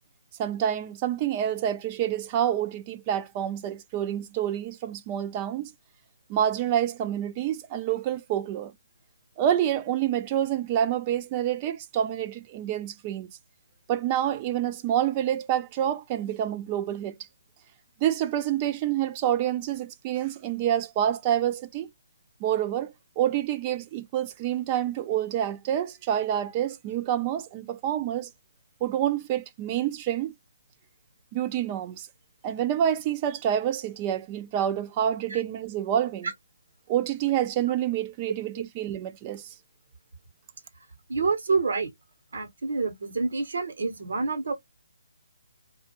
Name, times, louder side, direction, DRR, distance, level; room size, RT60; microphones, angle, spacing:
voice 1, 0.4-5.7 6.3-8.7 9.4-13.3 13.9-17.1 18.0-21.9 22.4-28.3 28.8-30.3 31.3-32.1 32.4-36.3 36.9-39.5, right 10 dB, 25° right, 0.3 m, -27 dB
voice 2, 41.1-41.9 42.3-44.5, right 4 dB, 65° right, 0.9 m, -27 dB
2.5 x 2.2 x 2.8 m
figure-of-eight pair, 150°, 0 cm